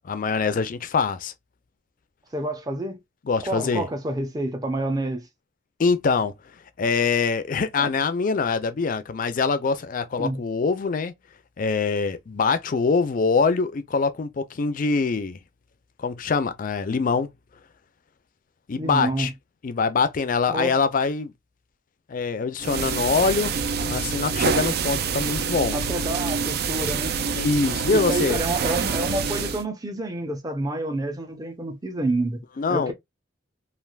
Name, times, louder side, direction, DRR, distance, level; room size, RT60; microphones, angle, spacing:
voice 1, 0.0-1.3 3.3-3.9 5.8-6.3 6.8-11.1 11.6-15.4 16.0-17.3 18.7-19.3 19.6-21.3 22.1-23.5 23.9-25.7 27.3-28.4 32.6-32.9, left 4 dB, 45° left, 0.4 m, -24 dB
voice 2, 2.3-3.0 3.5-5.3 7.8-7.9 10.2-10.4 18.8-19.3 20.5-20.7 25.7-27.1 27.9-32.4 32.7-32.9, right 1 dB, 20° right, 0.6 m, -28 dB
sound 1, 22.6-29.6, right 5 dB, 55° right, 0.4 m, -26 dB
3.3 x 2.4 x 2.3 m
head